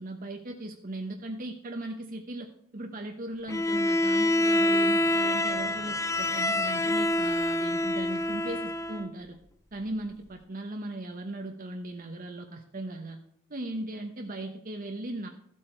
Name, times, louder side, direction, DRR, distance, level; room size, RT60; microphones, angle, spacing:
voice 1, 0.0-9.4 9.7-13.2 13.5-15.3, right 1 dB, 40° right, 4 dB, 1.0 m, -38 dB
Bowed string instrument, 3.5-9.1, left 1 dB, 15° left, 0.6 m, -26 dB
13.5 x 7.8 x 4.5 m, 0.70 s
head